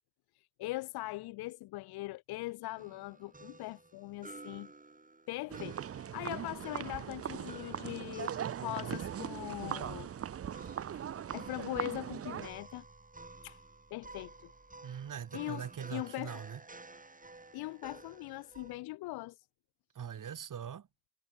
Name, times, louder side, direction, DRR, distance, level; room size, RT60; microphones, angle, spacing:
voice 1, 0.3-4.7 5.3-10.1 11.3-12.8 13.4-13.6 13.9-14.5 15.3-16.4 17.5-19.4, left 19 dB, 85° left, 1.1 m, -41 dB
sound 1, 2.8-18.8, right 3 dB, 20° right, 3.6 m, -53 dB
sound 2, 5.5-12.5, right 9 dB, 40° right, 0.6 m, -40 dB
voice 2, 14.8-16.6 19.9-20.9, right 8 dB, 55° right, 2.6 m, -42 dB
supercardioid pair, 55°, 37 cm